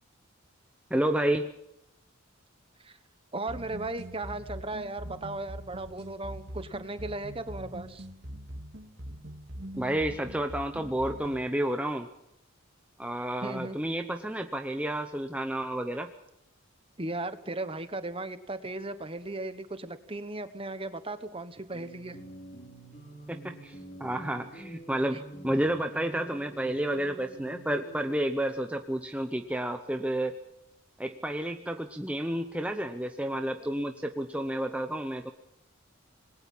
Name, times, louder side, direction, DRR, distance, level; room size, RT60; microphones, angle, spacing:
voice 1, 0.9-1.5 9.8-12.1 13.0-16.1 23.3-30.4 31.0-35.3, right 1 dB, 5° right, 6 dB, 0.8 m, -31 dB
voice 2, 3.3-8.1 13.4-13.8 17.0-22.2 25.1-25.2, right 2 dB, 25° right, 11 dB, 1.3 m, -36 dB
sound 1, 3.5-11.5, equal, 55° right, 2.9 m, -43 dB
sound 2, 21.7-28.1, right 1 dB, 35° left, 5.7 m, -47 dB
27.0 x 21.0 x 5.6 m, 0.80 s
head